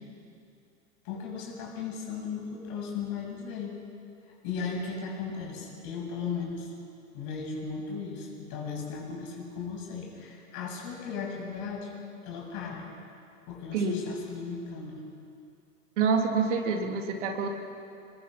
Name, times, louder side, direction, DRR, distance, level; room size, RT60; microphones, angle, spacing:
voice 1, 1.0-3.7 4.4-6.7 7.1-11.9 12.2-12.9 13.5-15.0, left 5 dB, 45° left, -1 dB, 7.3 m, -36 dB
voice 2, 16.0-17.5, right 5 dB, 65° right, 3 dB, 3.1 m, -27 dB
28.0 x 21.0 x 6.0 m, 2.5 s
figure-of-eight pair, 95°, 39 cm